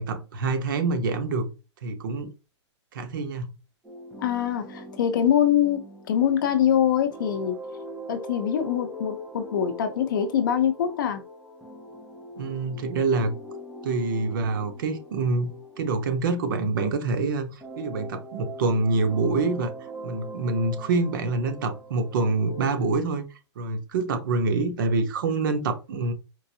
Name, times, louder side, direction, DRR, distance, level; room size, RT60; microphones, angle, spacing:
voice 1, 0.0-1.5 1.8-2.3 2.9-3.5 12.4-13.3 13.8-19.7 20.0-23.2 23.6-26.1, right 3 dB, 45° right, 0.8 m, -26 dB
sound 1, 3.8-17.1 17.6-22.7, equal, ahead, 0.4 m, -42 dB
voice 2, 4.2-5.8 6.1-7.6 8.1-11.2, left 9 dB, 45° left, 0.6 m, -23 dB
4.6 x 2.5 x 2.7 m
hypercardioid pair, 170°, 15 cm